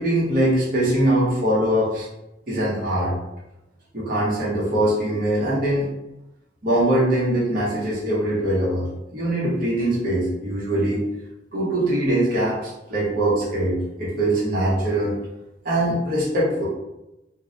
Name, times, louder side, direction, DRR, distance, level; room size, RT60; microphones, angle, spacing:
voice 1, 0.0-2.1 2.5-3.2 3.9-5.9 6.6-11.1 11.5-15.2 15.6-16.7, right 1 dB, 50° right, -6 dB, 1.0 m, -22 dB
2.3 x 2.1 x 3.8 m, 0.96 s
head